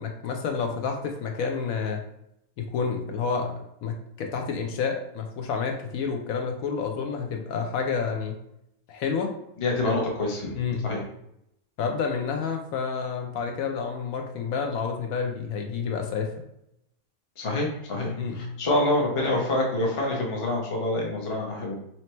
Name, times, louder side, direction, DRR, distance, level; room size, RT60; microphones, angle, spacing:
voice 1, 0.0-2.0 2.6-8.4 8.9-9.3 9.8-10.0 10.6-10.9 11.8-16.3 18.2-18.5, left 5 dB, 75° left, 3 dB, 1.0 m, -29 dB
voice 2, 9.6-10.5 10.8-11.0 17.4-21.8, left 2 dB, 30° left, -1 dB, 0.7 m, -26 dB
3.1 x 2.8 x 4.2 m, 0.78 s
omnidirectional pair, 1.5 m